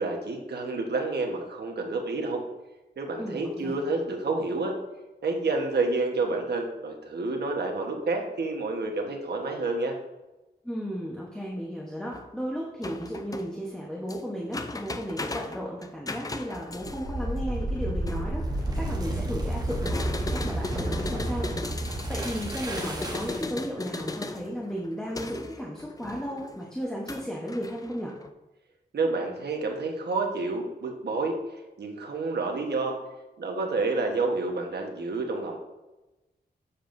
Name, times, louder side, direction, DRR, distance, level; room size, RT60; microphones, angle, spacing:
voice 1, 0.0-2.4 3.0-4.7 5.2-10.0 28.9-31.4 31.8-32.9 33.4-35.6, right 3 dB, 70° right, 1 dB, 1.2 m, -29 dB
voice 2, 3.2-3.8 10.6-18.4 18.7-21.5 22.1-28.1, equal, 5° left, -3 dB, 0.9 m, -34 dB
sound 1, 12.1-12.3 12.8-19.0 19.7-28.3, left 3 dB, 20° left, 0.4 m, -38 dB
sound 2, 16.7-23.6, right 1 dB, 20° right, 1.0 m, -31 dB
7.1 x 7.1 x 2.6 m, 1.0 s
wide cardioid pair, 125°, 18 cm